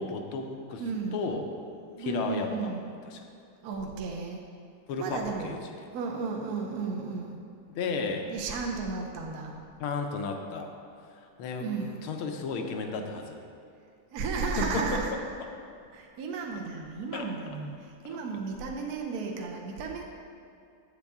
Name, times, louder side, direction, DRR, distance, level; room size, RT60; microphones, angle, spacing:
voice 1, 0.0-0.8 1.1-1.5 2.0-2.7 3.0-3.2 4.9-5.7 7.7-8.3 9.8-10.7 11.4-13.4 14.6-15.2 17.1-17.6, left 4 dB, 85° left, 4 dB, 1.6 m, -33 dB
voice 2, 0.7-1.2 1.9-2.8 3.6-4.4 5.0-5.6 5.9-7.4 8.3-9.5 11.6-12.0 14.1-15.1 15.9-20.0, right 4 dB, 60° right, 1 dB, 1.1 m, -34 dB
8.5 x 8.1 x 3.6 m, 2.5 s
omnidirectional pair, 2.3 m